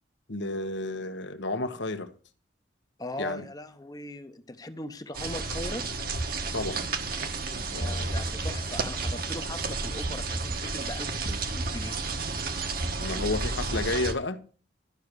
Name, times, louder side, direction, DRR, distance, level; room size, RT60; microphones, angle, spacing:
voice 1, 0.3-2.1 3.2-3.4 6.5-6.9 7.7-8.2 13.0-14.4, left 2 dB, 75° left, 1.2 m, -31 dB
voice 2, 3.0-5.8 7.7-12.0, left 1 dB, 20° left, 0.8 m, -39 dB
sound 1, 5.1-14.1, right 3 dB, 50° right, 1.3 m, -31 dB
12.5 x 6.0 x 6.7 m
head